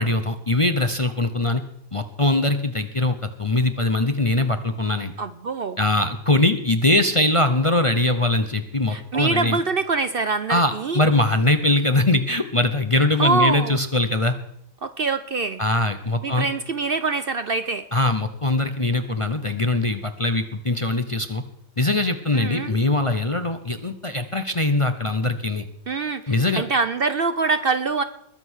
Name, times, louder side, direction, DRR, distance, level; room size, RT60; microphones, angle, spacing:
voice 1, 0.0-1.6 1.9-5.1 5.8-9.6 10.5-14.3 15.6-16.5 17.9-21.4 21.8-25.6 26.3-26.6, left 2 dB, 30° left, 8 dB, 0.7 m, -22 dB
voice 2, 5.2-5.8 8.9-11.0 13.2-13.8 14.8-15.6 16.2-17.9 22.3-22.8 25.9-28.0, right 4 dB, 50° right, 11 dB, 0.7 m, -24 dB
21.0 x 7.7 x 6.3 m, 0.73 s
omnidirectional pair, 1.5 m